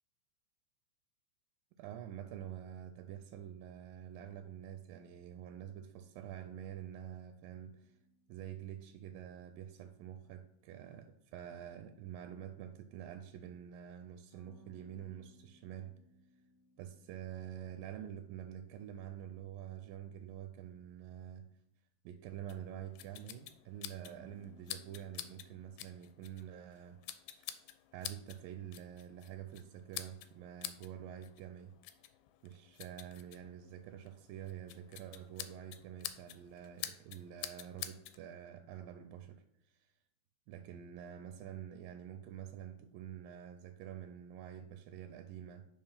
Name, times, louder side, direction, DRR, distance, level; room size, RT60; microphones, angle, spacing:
voice 1, 1.8-8.0 8.3-15.9 16.8-21.5 22.1-27.0 27.3-27.6 27.9-31.7 32.4-39.9 40.5-45.7, right 10 dB, 80° right, 8 dB, 2.2 m, -47 dB
sound 1, 7.7-10.0 14.3-19.1 24.0-25.9, right 2 dB, 10° left, 1.2 m, -66 dB
sound 2, 22.5-38.2, left 13 dB, 90° left, 2.5 m, -49 dB
9.6 x 4.9 x 5.6 m, 0.80 s
omnidirectional pair, 4.4 m